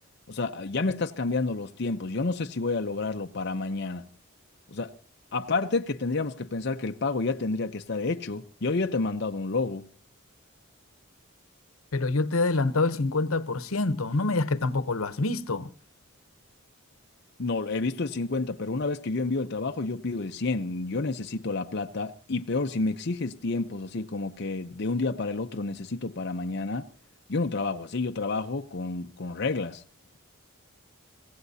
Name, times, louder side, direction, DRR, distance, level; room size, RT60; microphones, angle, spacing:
voice 1, 0.3-4.0 4.7-4.9 5.3-9.9 17.4-26.9 27.3-29.8, left 3 dB, 55° left, 0.7 m, -29 dB
voice 2, 11.9-15.7, left 3 dB, 90° left, 0.9 m, -26 dB
25.5 x 16.0 x 2.8 m
head